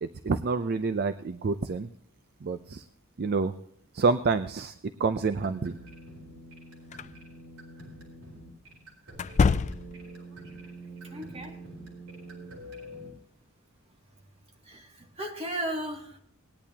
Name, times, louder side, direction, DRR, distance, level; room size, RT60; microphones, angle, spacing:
voice 1, 0.0-1.9 2.4-2.8 3.2-3.5 3.9-4.7 5.0-5.7, right 4 dB, 45° right, 10 dB, 0.5 m, -28 dB
sound 1, 5.3-13.1, right 1 dB, 80° right, 4.3 m, -45 dB
sound 2, 6.9-7.1 9.1-10.1, left 5 dB, 35° left, 0.3 m, -25 dB
voice 2, 11.1-11.6 14.7-16.2, right 1 dB, 30° right, 0 dB, 2.3 m, -35 dB
19.5 x 10.5 x 2.8 m, 0.65 s
head